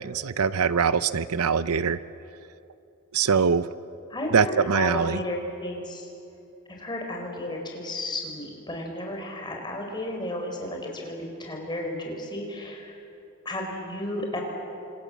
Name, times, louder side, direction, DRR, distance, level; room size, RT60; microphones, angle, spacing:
voice 1, 0.0-2.0 3.1-3.7 4.3-5.2, right 6 dB, 90° right, 15 dB, 0.7 m, -23 dB
voice 2, 4.1-6.1 6.7-13.0 13.4-14.4, left 1 dB, 20° left, 1 dB, 4.9 m, -33 dB
29.5 x 25.5 x 7.4 m, 2.8 s
head